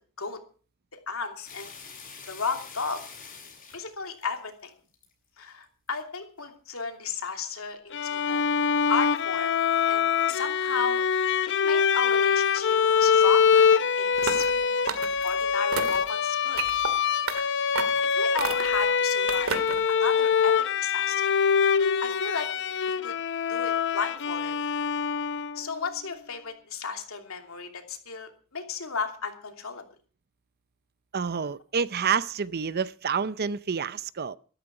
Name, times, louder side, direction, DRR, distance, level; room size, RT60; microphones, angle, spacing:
voice 1, 0.9-1.7 2.3-3.0 3.7-4.7 5.4-8.5 8.9-9.6 9.8-11.0 11.6-14.9 15.2-16.6 18.0-19.6 19.9-21.2 22.0-22.5 23.0-23.1 23.5-24.5 25.5-29.8, left 5 dB, 80° left, 2.9 m, -34 dB
sound 1, 1.4-5.1 5.6-6.0 6.4-6.5 6.9-7.5 8.0-8.1 8.6-8.7 8.9-9.2 9.8-9.9 10.7-10.8, left 5 dB, 40° left, 7.6 m, -46 dB
Bowed string instrument, 7.9-25.7, left 6 dB, 60° left, 0.7 m, -24 dB
sound 2, 14.2-14.5 14.9-15.3 15.7-16.1 16.6-16.9 17.3-17.4 17.7-18.0 18.4-18.8 19.3-19.8, right 5 dB, 85° right, 2.0 m, -31 dB
voice 2, 31.1-34.4, right 6 dB, 50° right, 0.6 m, -28 dB
13.5 x 13.0 x 5.9 m
head